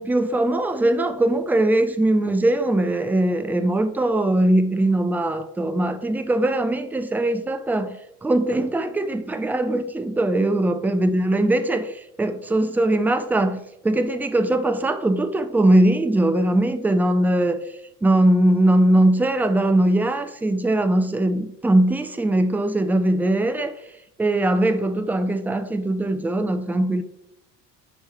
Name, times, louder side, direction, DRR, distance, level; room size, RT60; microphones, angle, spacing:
voice 1, 0.0-8.0 8.2-17.6 18.0-23.8 24.2-27.0, right 1 dB, 5° right, 0.4 m, -21 dB
10.5 x 4.5 x 3.2 m
figure-of-eight pair, 60°, 49 cm